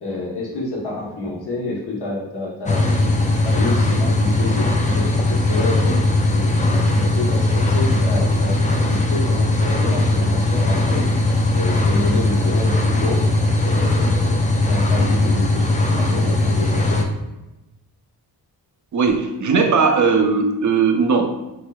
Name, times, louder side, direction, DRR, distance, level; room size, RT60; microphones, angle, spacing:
voice 1, 0.0-4.7 4.9-6.0 6.3-8.6 8.9-11.0 11.5-13.2 13.6-17.0, left 2 dB, 75° left, -4 dB, 1.1 m, -29 dB
sound 1, 2.7-17.0, left 2 dB, 20° left, 0.4 m, -19 dB
voice 2, 18.9-21.3, right 5 dB, 50° right, 5 dB, 0.4 m, -18 dB
3.4 x 3.0 x 2.3 m, 0.98 s
cardioid pair, 80°, 40 cm